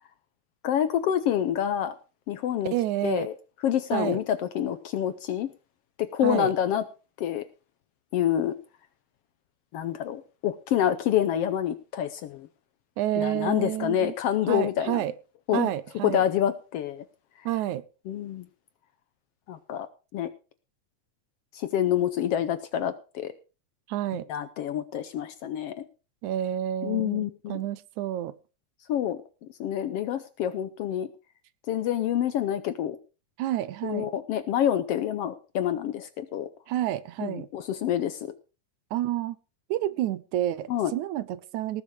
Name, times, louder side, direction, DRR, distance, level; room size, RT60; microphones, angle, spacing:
voice 1, 0.6-2.0 2.3-2.7 3.0-3.3 3.6-5.5 6.0-6.8 7.2-7.4 8.1-8.5 9.7-12.5 13.2-15.0 15.5-15.7 16.0-17.0 18.1-18.5 19.5-19.9 20.1-20.3 21.5-23.3 24.3-25.7 26.8-27.6 28.9-29.2 29.6-31.1 31.7-33.0 33.8-36.5 37.2-38.2 40.7-40.9, left 10 dB, 70° left, 1.5 m, -27 dB
voice 2, 2.7-3.3 3.9-4.2 6.2-6.5 13.0-14.1 14.5-15.1 15.5-16.2 17.5-17.8 23.9-24.3 26.2-28.3 33.4-34.1 36.7-37.5 38.9-39.4 39.7-41.8, right 12 dB, 85° right, 2.2 m, -29 dB
18.5 x 7.2 x 5.0 m
omnidirectional pair, 3.4 m